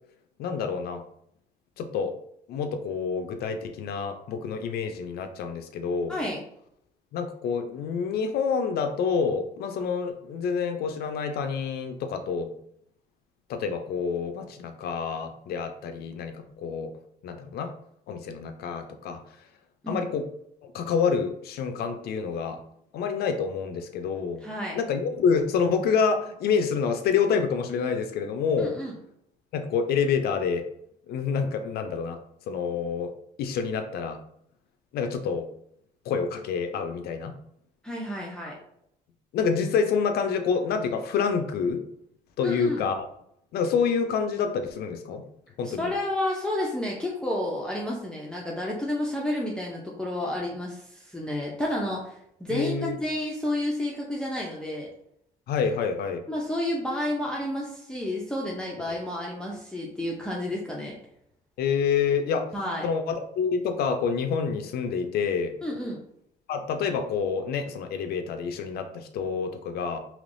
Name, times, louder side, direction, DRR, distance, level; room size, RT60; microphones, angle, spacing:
voice 1, 0.4-1.0 1.8-2.2 2.5-6.2 7.1-12.5 13.5-16.9 17.2-17.7 18.1-19.2 19.9-20.3 20.7-22.6 22.9-24.4 24.7-28.8 29.5-30.6 31.1-32.2 32.5-33.1 33.4-34.2 34.9-35.5 36.1-37.3 39.3-41.8 42.4-43.0 43.5-45.2 45.6-45.9 52.5-53.0 55.5-56.2 61.6-62.5 62.8-65.5 66.5-70.0, left 6 dB, 70° left, 6 dB, 0.5 m, -27 dB
voice 2, 24.4-24.8 28.6-29.0 37.8-38.6 42.4-42.8 45.6-54.9 56.3-60.9 62.5-62.9 65.6-66.0, left 1 dB, 5° left, -3 dB, 0.5 m, -31 dB
3.3 x 2.9 x 2.6 m, 0.71 s
cardioid pair, 110°, 17 cm